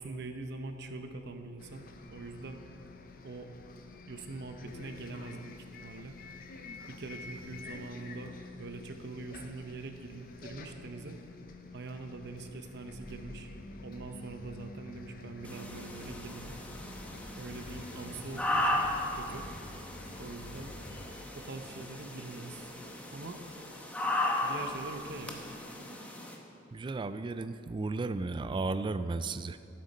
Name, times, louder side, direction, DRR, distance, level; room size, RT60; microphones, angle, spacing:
voice 1, 0.0-2.6 3.2-3.5 4.1-6.2 6.9-11.2 11.7-13.5 13.8-16.5 17.4-18.9 19.2-19.4 20.2-20.7 21.3-22.7 23.1-23.4 24.4-25.4, right 2 dB, 60° right, 6 dB, 0.8 m, -43 dB
Bus, 1.6-21.3, left 2 dB, 50° left, 0.7 m, -48 dB
sound 1, 15.4-26.4, left 1 dB, 5° left, 0.9 m, -36 dB
voice 2, 26.7-29.6, right 3 dB, 25° right, 12 dB, 0.3 m, -34 dB
14.0 x 7.7 x 4.2 m, 2.6 s
head